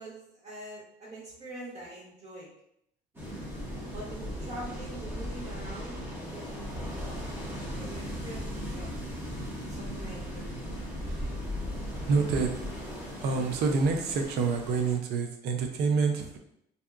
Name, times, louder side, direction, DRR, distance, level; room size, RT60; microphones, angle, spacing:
voice 1, 0.0-2.5 3.9-5.9 6.3-8.9 9.7-10.5, right 1 dB, 40° right, -5 dB, 1.2 m, -44 dB
sound 1, 3.1-15.0, equal, 15° right, 0.8 m, -37 dB
voice 2, 12.1-12.6 13.2-16.4, right 4 dB, 75° right, 4 dB, 0.5 m, -27 dB
2.7 x 2.2 x 2.3 m, 0.75 s
cardioid pair, 110°, 17 cm